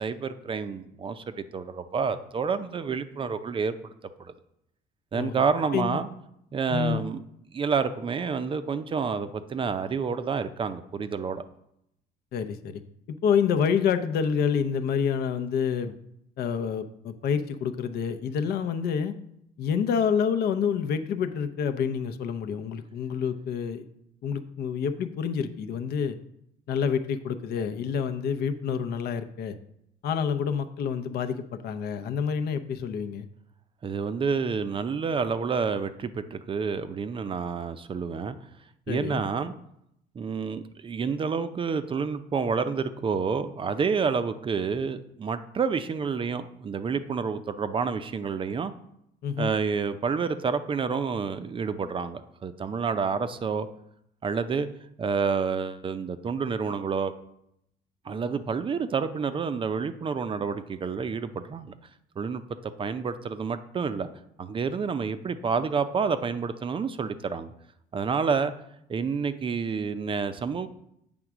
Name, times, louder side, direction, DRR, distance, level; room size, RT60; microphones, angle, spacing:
voice 1, 0.0-3.7 4.2-4.3 5.1-6.1 6.5-7.2 7.5-11.4 33.8-38.4 38.9-39.5 40.2-48.7 49.4-53.7 54.2-54.7 55.0-57.1 58.1-61.7 62.2-64.1 64.4-67.5 67.9-68.5 68.9-70.7, right 5 dB, 30° right, 11 dB, 0.5 m, -29 dB
voice 2, 5.1-5.5 5.7-6.0 6.7-7.0 12.3-12.8 13.2-15.9 16.4-19.1 19.6-23.9 24.2-26.2 26.7-29.6 30.0-33.3 38.9-39.2 49.2-49.5, left 7 dB, 70° left, 9 dB, 0.7 m, -28 dB
7.8 x 3.6 x 6.0 m, 0.77 s
cardioid pair, 110°, 17 cm